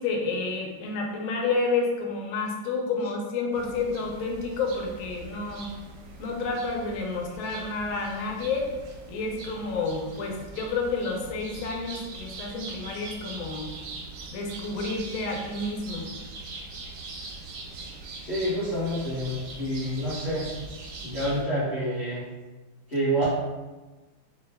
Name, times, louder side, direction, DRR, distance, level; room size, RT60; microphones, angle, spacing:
voice 1, 0.0-5.7 6.2-8.7 9.1-13.7 14.3-16.1, left 3 dB, 80° left, 1 dB, 1.5 m, -30 dB
sound 1, 3.5-21.4, right 3 dB, 70° right, 1.0 m, -42 dB
voice 2, 18.2-20.4 21.0-22.2 22.9-23.3, equal, 35° left, -10 dB, 0.8 m, -28 dB
4.3 x 2.2 x 3.3 m, 1.2 s
omnidirectional pair, 2.3 m